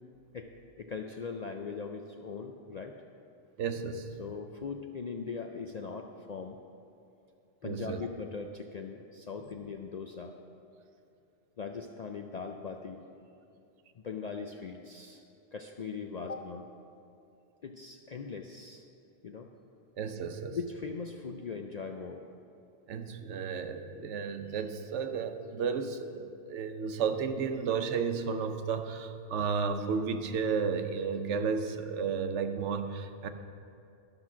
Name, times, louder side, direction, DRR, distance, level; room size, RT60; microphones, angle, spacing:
voice 1, 0.8-3.0 4.2-6.6 7.6-10.3 11.6-13.0 14.0-15.2 15.5-16.7 17.6-18.8 19.2-19.5 20.5-22.3, left 5 dB, 60° left, 3 dB, 0.4 m, -40 dB
voice 2, 3.6-4.1 7.6-8.0 20.0-20.6 22.9-33.3, right 5 dB, 80° right, 8 dB, 1.0 m, -33 dB
12.5 x 5.9 x 6.1 m, 2.6 s
omnidirectional pair, 1.2 m